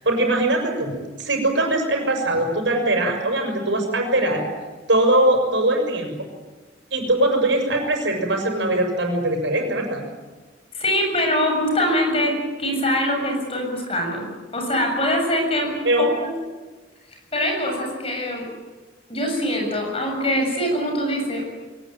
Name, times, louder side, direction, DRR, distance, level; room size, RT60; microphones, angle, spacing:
voice 1, 0.0-4.4 4.9-6.3 6.9-10.0 15.8-16.1, right 1 dB, 80° right, 3 dB, 6.4 m, -21 dB
voice 2, 10.7-14.3 14.5-15.7 16.0-16.3 17.3-18.5 19.1-21.4, equal, 30° left, 1 dB, 7.3 m, -23 dB
23.0 x 19.5 x 9.2 m, 1.3 s
head